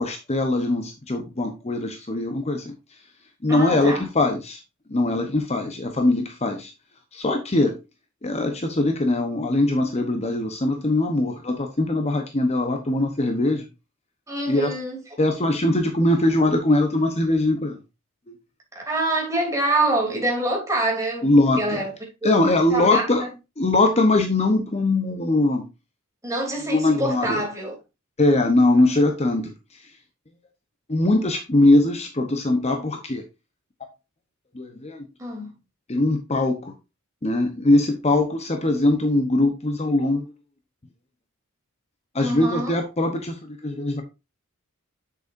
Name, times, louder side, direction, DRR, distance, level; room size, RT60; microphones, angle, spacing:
voice 1, 0.0-2.8 3.4-4.6 4.9-6.7 7.1-7.8 8.2-13.7 14.5-14.7 15.2-17.8 18.3-18.4 21.2-21.8 22.2-23.3 23.6-25.7 26.7-27.4 28.2-29.9 30.9-33.2 34.5-35.1 35.9-36.7 37.2-40.3 42.1-44.0, left 2 dB, 30° left, 0.9 m, -21 dB
voice 2, 3.5-4.0 14.3-15.0 18.7-21.9 22.2-22.3 22.7-23.3 26.2-27.8 35.2-35.5 42.2-42.7, right 2 dB, 15° right, 3.0 m, -26 dB
7.8 x 6.6 x 2.6 m
head